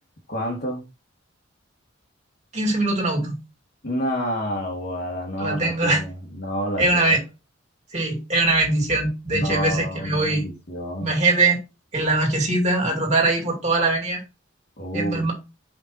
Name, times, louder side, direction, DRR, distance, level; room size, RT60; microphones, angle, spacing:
voice 1, 0.3-0.8 3.8-7.2 9.3-11.1 14.8-15.3, equal, 50° left, 1.8 m, -29 dB
voice 2, 2.5-3.4 5.4-6.0 6.8-7.2 7.9-10.4 11.0-11.6 11.9-14.2 14.9-15.3, right 2 dB, 35° right, 2.4 m, -21 dB
5.2 x 4.8 x 4.2 m
head